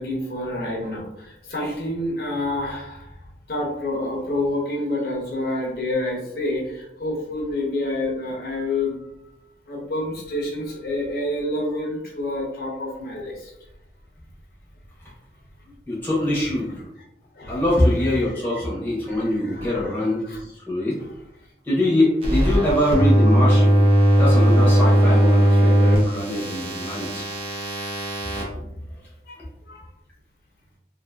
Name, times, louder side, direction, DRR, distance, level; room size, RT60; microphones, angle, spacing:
voice 1, 0.0-3.2 3.5-9.1 9.7-13.5 16.7-16.8 17.3-18.3 19.1-20.5 21.0-21.1 29.3-29.4 29.7-29.9, left 1 dB, 60° left, -2 dB, 0.6 m, -28 dB
voice 2, 15.9-16.7 17.5-20.2 20.7-21.0 21.6-23.9 24.2-27.2, left 1 dB, 10° left, -7 dB, 0.7 m, -23 dB
sound 1, 22.2-28.4, equal, 35° right, 0.5 m, -18 dB
2.6 x 2.5 x 2.2 m, 0.85 s
head